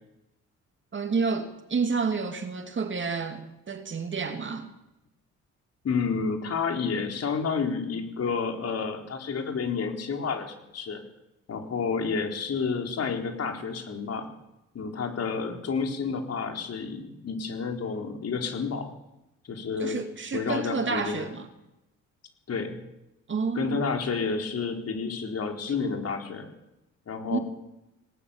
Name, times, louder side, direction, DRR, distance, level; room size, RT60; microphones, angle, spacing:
voice 1, 0.9-4.7 19.8-21.5 23.3-23.8 27.3-27.4, right 5 dB, 40° right, 2.6 m, -29 dB
voice 2, 5.8-11.0 11.5-14.3 14.7-18.9 19.4-20.0 20.3-21.3 22.5-22.8 23.6-26.5 27.1-27.4, left 5 dB, 55° left, 4.1 m, -30 dB
19.0 x 19.0 x 7.3 m
cardioid pair, 90°, 30 cm